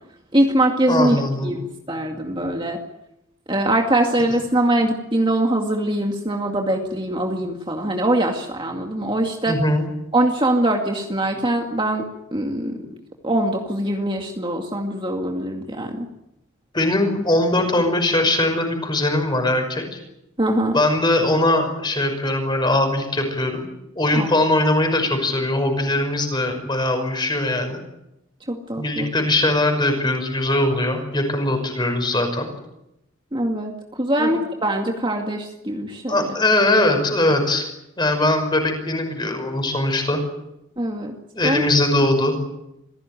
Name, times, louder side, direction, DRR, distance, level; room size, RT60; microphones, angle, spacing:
voice 1, 0.3-2.8 3.5-9.6 10.1-12.0 12.3-12.8 13.2-16.1 20.4-20.8 24.1-24.3 28.5-29.1 33.3-36.2 40.8-41.1 41.4-41.6, right 1 dB, 25° right, 2 dB, 2.2 m, -22 dB
voice 2, 0.9-1.5 9.5-9.9 16.7-20.0 20.7-23.6 24.0-27.8 28.8-32.5 34.2-34.3 36.1-37.7 38.0-40.2 41.3-42.4, left 1 dB, 20° left, 5 dB, 5.8 m, -21 dB
26.5 x 17.0 x 9.2 m, 0.88 s
head